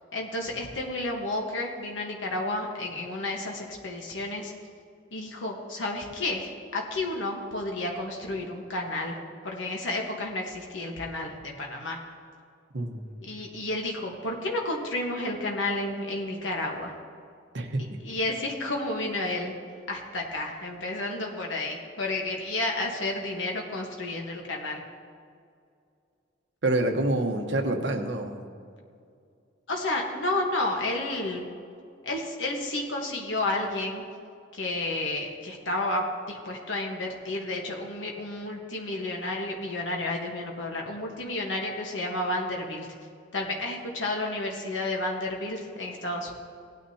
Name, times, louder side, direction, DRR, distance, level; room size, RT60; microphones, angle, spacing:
voice 1, 0.1-4.5 5.1-9.2 9.4-12.0 13.3-16.9 18.0-19.5 19.9-24.8 29.7-31.5 32.0-34.0 34.5-42.9 43.3-46.3, left 2 dB, 80° left, 1 dB, 1.2 m, -31 dB
voice 2, 12.7-13.1 17.5-18.0 26.6-28.4, right 2 dB, 70° right, 4 dB, 1.1 m, -27 dB
17.5 x 9.4 x 2.8 m, 2.3 s
head